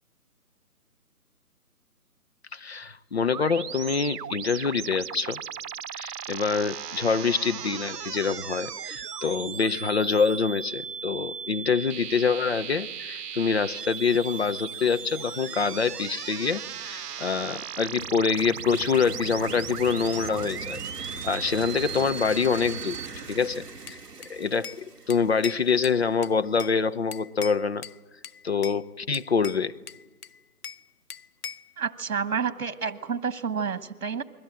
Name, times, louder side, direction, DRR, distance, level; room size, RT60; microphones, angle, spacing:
voice 1, 2.5-5.4 5.9-23.0 23.3-24.0 24.3-27.8 28.4-29.8, left 5 dB, 45° left, 13 dB, 0.7 m, -26 dB
sound 1, 3.3-23.1, right 8 dB, 90° right, 0.7 m, -37 dB
sound 2, 18.0-25.8, right 3 dB, 5° right, 1.5 m, -40 dB
Bell / Glass, 23.9-24.8 25.1-26.8 27.1-28.0 28.2-28.8 29.1-30.8 31.1-31.7, left 7 dB, 75° left, 0.8 m, -41 dB
voice 2, 31.8-34.2, right 6 dB, 60° right, 14 dB, 1.5 m, -29 dB
29.0 x 22.0 x 7.6 m, 1.3 s
hypercardioid pair, 170°, 46 cm